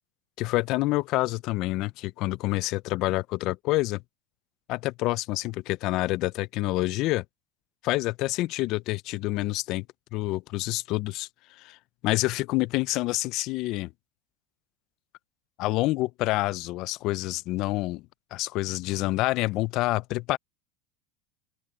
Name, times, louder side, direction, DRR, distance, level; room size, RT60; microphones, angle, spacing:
voice 1, 0.4-4.0 4.7-7.2 7.8-9.9 10.1-11.3 11.6-11.8 12.0-13.9 15.6-18.0 18.3-20.4, left 19 dB, 40° left, 0.4 m, -27 dB
open air
supercardioid pair, 165°, 0 cm